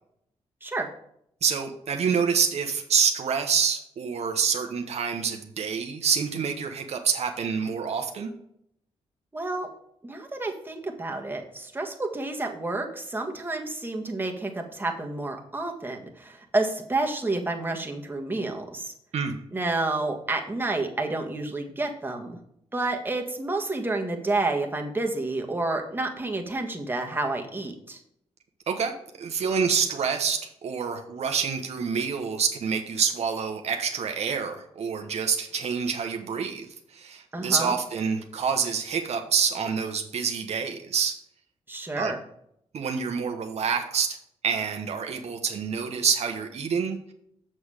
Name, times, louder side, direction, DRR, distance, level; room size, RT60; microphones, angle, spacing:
voice 1, 1.4-8.3 19.1-19.4 28.7-41.1 42.0-42.1 42.7-44.2 44.4-47.1, right 6 dB, 70° right, 5 dB, 1.0 m, -27 dB
voice 2, 9.3-9.7 10.0-18.9 19.5-22.4 22.7-28.0 37.3-37.7 41.7-42.2, right 2 dB, 20° right, 2 dB, 1.6 m, -29 dB
7.5 x 6.3 x 4.9 m, 0.72 s
cardioid pair, 80°, 11 cm